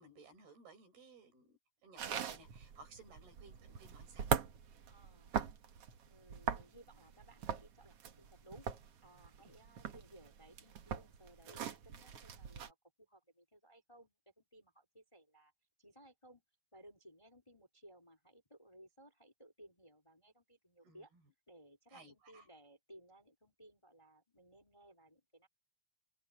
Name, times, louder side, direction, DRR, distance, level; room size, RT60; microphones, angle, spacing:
voice 1, 0.0-4.3 9.4-9.6 20.8-21.1 21.9-22.5, right 3 dB, 60° right, 7.2 m, -59 dB
sound 1, 2.0-12.7, right 8 dB, 85° right, 1.3 m, -41 dB
voice 2, 4.9-5.3 6.1-8.7 9.0-15.5 15.8-16.4 16.7-21.1 21.5-25.5, right 1 dB, 5° left, 3.8 m, -61 dB
open air
omnidirectional pair, 5.1 m